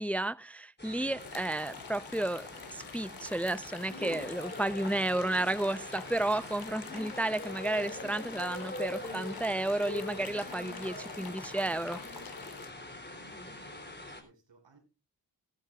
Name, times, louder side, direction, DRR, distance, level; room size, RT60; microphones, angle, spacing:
voice 1, 0.0-2.4 2.7-12.0, right 1 dB, 5° left, 0.6 m, -32 dB
sound 1, 0.8-14.2, left 1 dB, 25° left, 3.4 m, -43 dB
sound 2, 1.2-12.7, left 7 dB, 55° left, 1.0 m, -48 dB
voice 2, 13.1-14.8, right 4 dB, 85° right, 5.1 m, -61 dB
18.5 x 11.5 x 2.4 m
wide cardioid pair, 70°, 42 cm